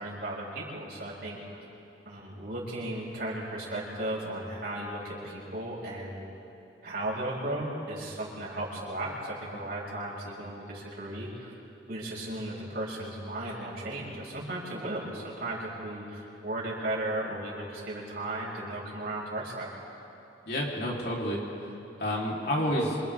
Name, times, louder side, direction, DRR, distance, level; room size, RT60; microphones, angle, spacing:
voice 1, 0.0-1.6 2.0-6.2 6.8-11.5 11.9-19.7, right 1 dB, 55° right, -5 dB, 6.0 m, -35 dB
voice 2, 20.5-21.7 22.0-23.0, equal, 55° left, -4 dB, 3.7 m, -30 dB
27.5 x 27.0 x 3.7 m, 3.0 s
head